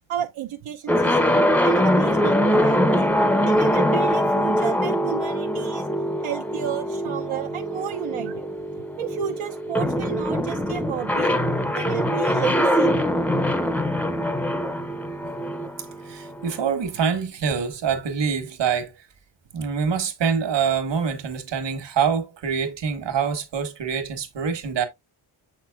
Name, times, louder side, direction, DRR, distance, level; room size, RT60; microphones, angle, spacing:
voice 1, 0.1-3.1 3.5-5.9 6.2-8.5 9.0-11.3 11.7-12.9, right 9 dB, 85° right, 0.9 m, -32 dB
sound 1, 0.9-16.6, equal, 5° left, 0.5 m, -23 dB
voice 2, 16.0-19.1 19.5-24.9, right 6 dB, 60° right, 1.4 m, -25 dB
7.2 x 5.9 x 2.3 m
wide cardioid pair, 175°, 48 cm